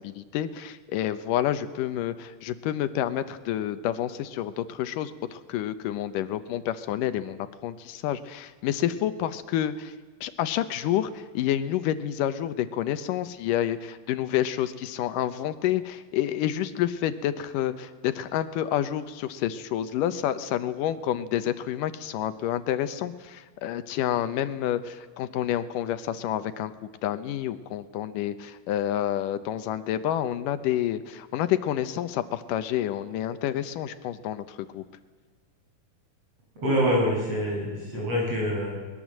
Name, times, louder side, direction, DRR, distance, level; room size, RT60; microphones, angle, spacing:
voice 1, 0.0-9.9 10.2-26.7 27.0-34.8, left 11 dB, 80° left, 12 dB, 2.5 m, -29 dB
voice 2, 36.6-38.7, equal, 45° right, -3 dB, 9.1 m, -25 dB
21.5 x 20.5 x 7.6 m, 1.4 s
omnidirectional pair, 3.7 m